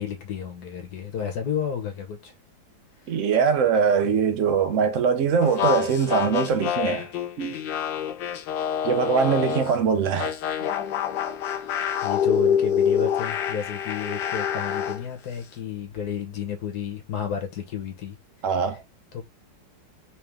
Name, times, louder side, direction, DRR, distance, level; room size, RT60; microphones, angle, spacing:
voice 1, 0.0-2.3 3.0-3.1 11.5-18.2 19.1-19.2, left 7 dB, 60° left, 1.3 m, -32 dB
voice 2, 3.1-7.1 7.4-7.6 8.8-10.4 18.4-18.8, right 6 dB, 60° right, 0.8 m, -22 dB
sound 1, 5.4-9.8 10.2-15.0, left 8 dB, 80° left, 1.4 m, -26 dB
3.3 x 3.2 x 3.3 m
omnidirectional pair, 2.0 m